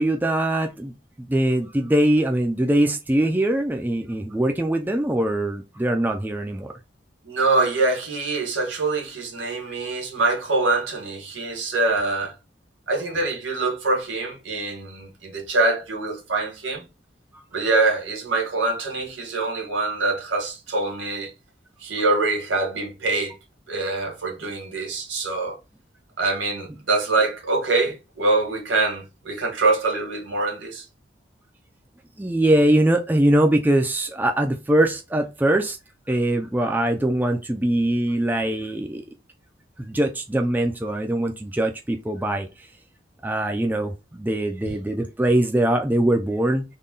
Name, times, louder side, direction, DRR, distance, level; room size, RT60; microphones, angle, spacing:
voice 1, 0.0-6.7 32.2-35.8 36.1-39.0 39.8-42.5 43.2-46.6, right 1 dB, 10° right, 0.3 m, -22 dB
voice 2, 7.2-12.3 12.9-16.8 17.5-21.3 21.8-23.4 23.7-25.6 26.2-30.8, right 3 dB, 90° right, 1.6 m, -24 dB
3.6 x 2.2 x 3.8 m
head